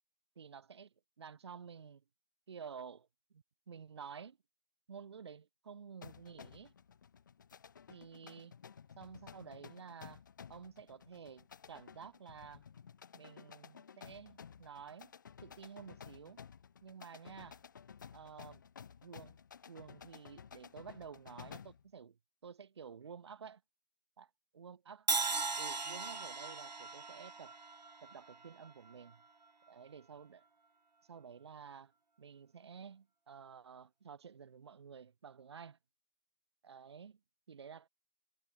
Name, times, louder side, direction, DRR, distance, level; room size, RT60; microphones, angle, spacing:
voice 1, 0.4-2.0 2.5-3.1 3.3-4.4 4.9-6.7 7.9-8.5 9.0-10.2 10.5-12.6 13.1-15.1 15.4-16.4 16.8-17.6 18.1-18.6 19.0-19.4 19.7-22.2 22.4-23.6 24.2-25.1 25.3-27.5 28.0-29.2 29.7-30.5 31.1-31.9 32.2-35.8 36.6-37.2 37.5-37.9, right 6 dB, 40° right, 1.3 m, -52 dB
sound 1, 6.0-21.9, left 7 dB, 30° left, 0.7 m, -55 dB
Crash cymbal, 25.1-29.1, right 4 dB, 90° right, 0.6 m, -38 dB
figure-of-eight pair, 150°, 21 cm